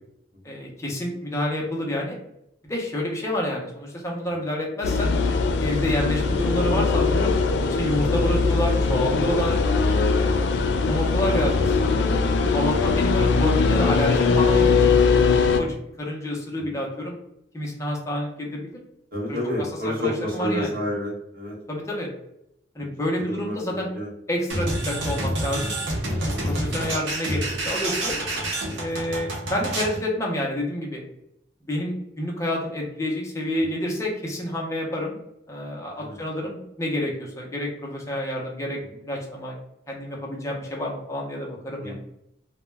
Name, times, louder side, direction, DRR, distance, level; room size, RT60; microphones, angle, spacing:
voice 1, 0.4-2.2 2.7-5.2 5.5-7.3 7.8-9.6 10.1-12.2 12.5-15.1 15.6-17.2 17.5-18.8 19.3-19.7 20.0-20.7 21.7-22.1 22.8-23.9 24.3-25.8 26.2-28.2 28.8-31.0 31.6-35.2 35.5-39.6 39.9-41.9, left 1 dB, 15° left, -1 dB, 0.5 m, -29 dB
sound 1, 4.8-15.6, left 4 dB, 65° left, 0.3 m, -21 dB
voice 2, 19.1-21.6 22.8-22.9 23.2-24.1 33.6-33.7 36.0-36.2 41.8-41.9, equal, 55° right, -3 dB, 0.9 m, -30 dB
sound 2, 24.5-30.0, right 1 dB, 80° right, 0.6 m, -28 dB
2.2 x 2.1 x 3.1 m, 0.79 s
head